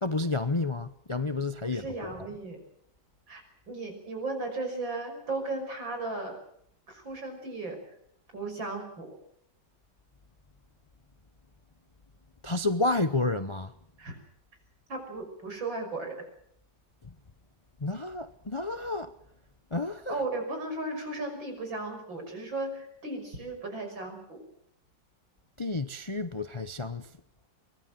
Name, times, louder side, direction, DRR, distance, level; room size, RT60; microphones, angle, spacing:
voice 1, 0.0-1.9 2.2-2.3 12.4-13.7 17.8-19.1 19.7-20.2 25.6-27.1, left 2 dB, 40° left, 0.4 m, -30 dB
voice 2, 1.7-2.6 3.3-6.4 6.9-7.8 8.3-9.1 14.0-14.2 14.9-16.2 20.1-24.4, right 2 dB, 85° right, 6.6 m, -36 dB
24.0 x 19.5 x 7.6 m
omnidirectional pair, 2.0 m